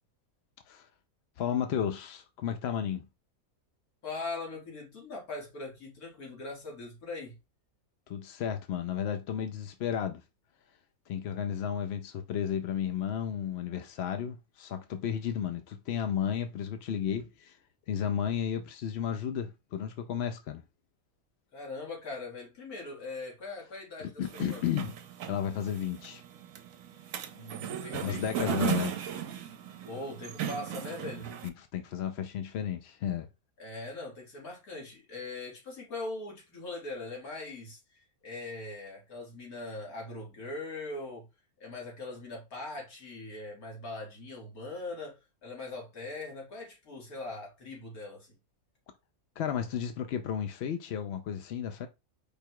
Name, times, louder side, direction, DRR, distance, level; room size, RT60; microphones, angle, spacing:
voice 1, 1.4-3.1 8.1-10.2 11.1-17.6 17.9-20.6 24.0-24.9 25.3-26.2 27.9-28.9 31.4-33.3 49.4-51.9, left 8 dB, 65° left, 0.6 m, -33 dB
voice 2, 4.0-7.4 21.5-24.6 27.3-29.0 29.8-31.3 33.6-41.3 41.6-48.4, left 2 dB, 90° left, 2.4 m, -41 dB
sound 1, 24.2-31.5, right 9 dB, 70° right, 1.0 m, -36 dB
5.0 x 2.3 x 4.5 m
omnidirectional pair, 1.5 m